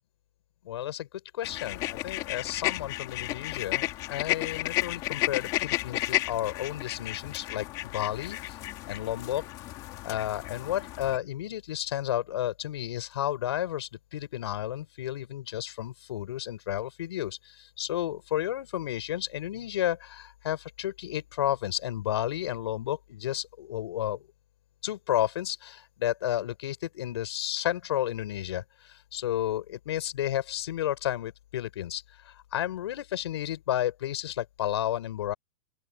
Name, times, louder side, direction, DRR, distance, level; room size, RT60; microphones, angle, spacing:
voice 1, 0.6-1.1 1.3-8.6 8.9-9.4 10.0-24.2 24.8-35.3, left 12 dB, 55° left, 5.7 m, -32 dB
sound 1, 1.4-11.2, left 17 dB, 20° left, 2.6 m, -33 dB
open air
hypercardioid pair, 175°, 17 cm